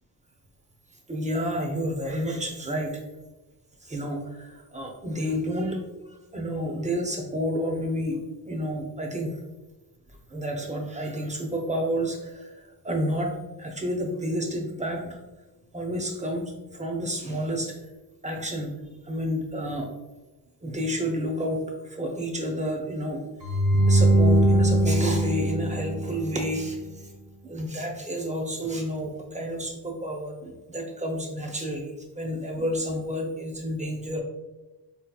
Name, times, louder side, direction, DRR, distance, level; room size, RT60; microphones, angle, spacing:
voice 1, 1.1-2.9 3.8-5.8 6.1-8.2 8.5-9.4 10.3-15.2 15.7-17.7 18.2-18.7 19.0-19.9 20.6-23.2 23.9-27.1 27.4-34.2, equal, 15° right, 2 dB, 0.6 m, -30 dB
sound 1, 23.4-26.6, right 1 dB, 50° right, 0.7 m, -21 dB
3.9 x 2.9 x 2.3 m, 1.1 s
cardioid pair, 80°, 42 cm